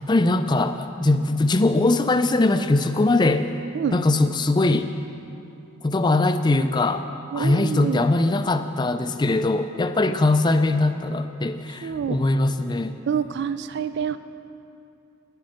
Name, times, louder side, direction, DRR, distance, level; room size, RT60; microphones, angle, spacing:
voice 1, 0.0-3.5 3.9-4.9 5.8-7.0 7.3-13.0, left 2 dB, 20° left, 10 dB, 0.4 m, -21 dB
voice 2, 7.3-8.0 11.8-12.2 13.1-14.2, right 7 dB, 55° right, 13 dB, 0.3 m, -27 dB
10.5 x 9.8 x 6.4 m, 2.7 s
head